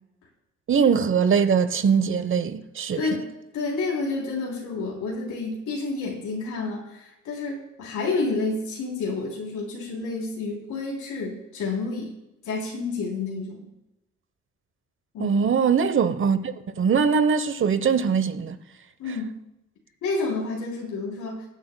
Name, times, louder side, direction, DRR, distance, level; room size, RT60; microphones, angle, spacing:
voice 1, 0.7-3.2 15.2-18.6, right 6 dB, 40° right, 0.9 m, -22 dB
voice 2, 2.9-12.1 12.4-13.7 15.1-15.4 19.0-19.3 20.0-21.4, left 3 dB, 80° left, 3.3 m, -29 dB
21.0 x 8.8 x 2.2 m
cardioid pair, 90°, 30 cm